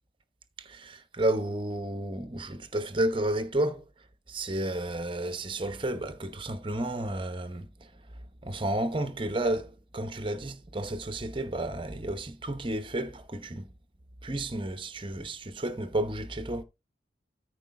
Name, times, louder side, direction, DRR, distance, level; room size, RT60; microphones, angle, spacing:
voice 1, 0.6-3.8 4.3-8.0 8.4-13.7 14.2-16.6, right 1 dB, 25° right, 0.9 m, -32 dB
13.5 x 4.9 x 3.5 m
head